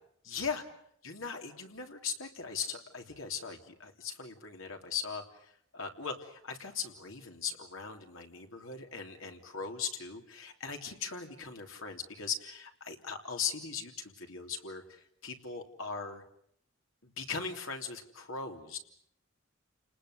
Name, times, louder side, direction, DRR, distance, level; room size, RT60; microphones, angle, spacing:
voice 1, 0.2-0.6 1.0-5.2 5.7-14.8 15.2-16.2 17.0-18.8, left 5 dB, 80° left, 4 dB, 3.3 m, -39 dB
30.0 x 19.5 x 7.9 m, 0.69 s
head